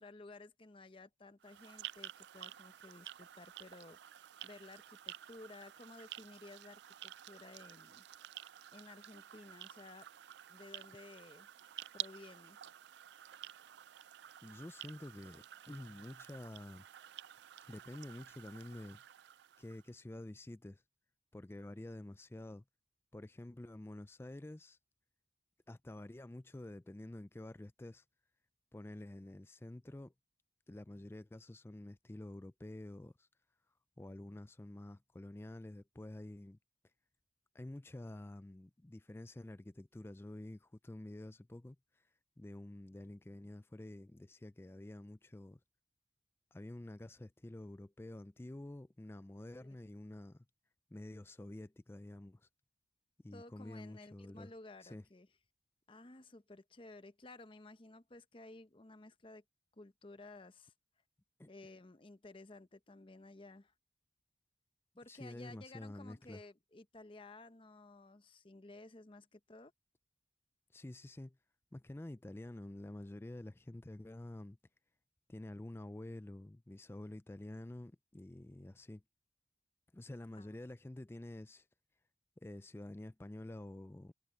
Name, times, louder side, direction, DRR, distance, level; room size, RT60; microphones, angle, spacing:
voice 1, 0.0-8.0 8.7-10.1 10.5-11.5 11.9-12.6 49.6-49.8 53.3-55.3 55.9-59.4 59.7-60.7 61.5-63.7 65.0-69.7 80.3-80.6, left 2 dB, 30° left, 0.8 m, -55 dB
sound 1, 1.4-19.9, right 13 dB, 65° right, 0.3 m, -51 dB
voice 2, 14.4-16.9 17.7-19.0 19.6-20.8 21.3-22.6 23.1-24.8 25.7-28.0 28.7-30.1 30.7-33.3 34.0-36.6 37.5-41.8 42.4-45.6 46.5-50.4 50.9-52.5 53.2-54.5 54.8-55.0 61.4-61.5 65.1-66.4 70.7-71.4 71.7-74.6 75.3-79.0 79.9-81.7 82.4-84.1, left 1 dB, 15° left, 0.3 m, -49 dB
head